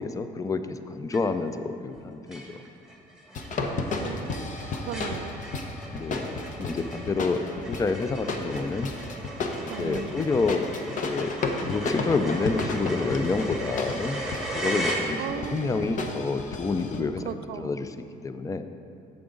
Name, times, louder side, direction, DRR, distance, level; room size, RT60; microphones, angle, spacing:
voice 1, 0.0-2.6 5.9-8.9 9.6-15.2 15.5-17.2 17.6-17.9 18.2-18.6, left 4 dB, 20° left, 10 dB, 0.4 m, -29 dB
sound 1, 1.1-1.6 1.9-2.0 2.3-15.6, right 1 dB, 5° right, 1.2 m, -37 dB
sound 2, 3.3-17.0, left 3 dB, 50° left, 0.8 m, -32 dB
voice 2, 4.0-5.4 9.7-10.3 15.2-16.0 17.2-17.8, right 9 dB, 70° right, 11 dB, 0.4 m, -37 dB
8.7 x 7.0 x 3.8 m, 2.7 s
cardioid pair, 110°, 17 cm